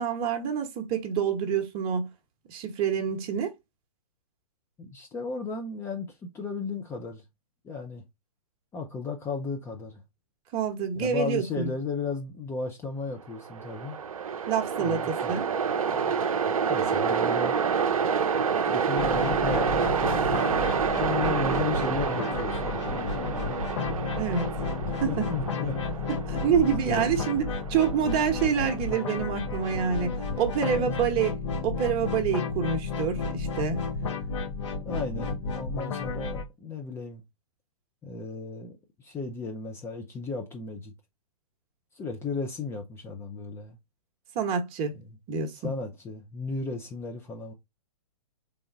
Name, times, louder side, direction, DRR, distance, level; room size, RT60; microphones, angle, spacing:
voice 1, 0.0-2.1 2.5-3.5 10.5-11.7 14.5-15.0 15.3-15.4 24.2-24.5 25.0-25.3 26.1-27.4 27.7-31.4 31.6-33.8 44.3-44.9 45.3-45.7, right 7 dB, 30° right, 1.0 m, -27 dB
voice 2, 4.8-7.2 7.6-8.0 8.7-10.0 10.9-14.0 14.8-15.3 15.9-16.2 16.7-17.6 18.7-20.1 21.0-23.6 24.8-25.8 26.5-27.1 30.7-30.9 34.8-37.2 38.0-40.9 41.9-43.8 44.9-45.2 45.6-47.5, left 4 dB, 15° left, 0.5 m, -35 dB
Train, 13.3-30.5, right 6 dB, 65° right, 0.6 m, -29 dB
sound 1, 19.0-36.4, left 4 dB, 50° left, 1.0 m, -32 dB
3.7 x 3.4 x 3.9 m
figure-of-eight pair, 115°, 19 cm